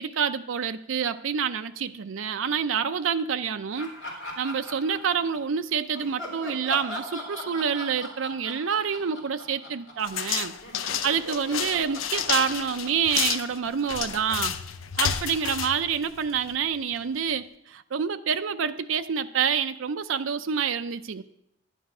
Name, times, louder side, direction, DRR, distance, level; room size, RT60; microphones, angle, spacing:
voice 1, 0.0-3.9 4.4-10.6 11.0-14.6 15.0-21.2, right 7 dB, 80° right, 9 dB, 0.5 m, -27 dB
Laughter, 3.8-5.5 5.9-10.3 10.6-14.2, left 1 dB, 60° left, 3.7 m, -41 dB
sound 1, 10.0-16.6, left 9 dB, 85° left, 0.7 m, -31 dB
11.0 x 9.9 x 6.0 m, 0.76 s
head